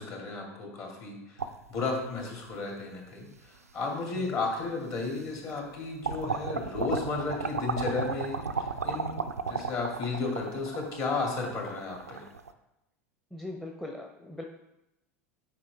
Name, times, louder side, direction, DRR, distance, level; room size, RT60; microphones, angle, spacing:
voice 1, 0.0-1.4 1.7-12.2, left 3 dB, 45° left, 0 dB, 2.4 m, -33 dB
sound 1, 1.4-2.5 3.3-3.4 4.6-4.7 5.1-5.7 6.0-12.5, right 5 dB, 90° right, 0.4 m, -34 dB
voice 2, 13.3-14.4, left 1 dB, 5° left, 1 dB, 0.7 m, -40 dB
8.6 x 5.2 x 3.5 m, 0.90 s
figure-of-eight pair, 80°, 8 cm